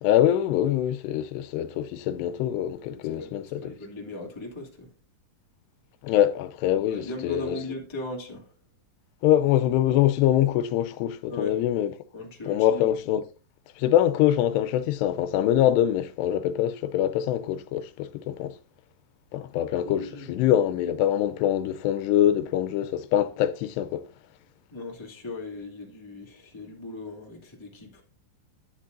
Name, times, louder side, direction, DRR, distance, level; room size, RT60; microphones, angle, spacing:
voice 1, 0.0-3.7 6.0-7.6 9.2-11.9 12.4-13.3 13.8-18.6 19.3-24.1, left 11 dB, 85° left, 2.8 m, -24 dB
voice 2, 2.8-4.9 6.7-8.4 11.3-11.5 12.1-12.8 20.0-20.3 24.7-28.0, left 2 dB, 10° left, 1.3 m, -38 dB
11.0 x 10.0 x 2.6 m
omnidirectional pair, 4.8 m